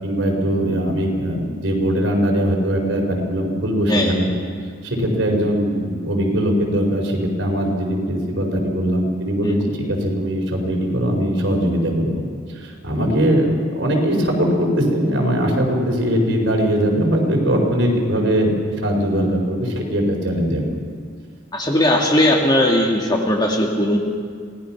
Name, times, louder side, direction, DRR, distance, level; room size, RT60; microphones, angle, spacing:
voice 1, 0.0-4.3 4.8-12.2 12.5-18.5 18.8-20.8, equal, 60° right, 0 dB, 4.8 m, -20 dB
voice 2, 9.4-9.8 21.5-24.0, left 1 dB, 20° left, 0 dB, 1.9 m, -18 dB
26.5 x 18.5 x 5.9 m, 2.1 s
head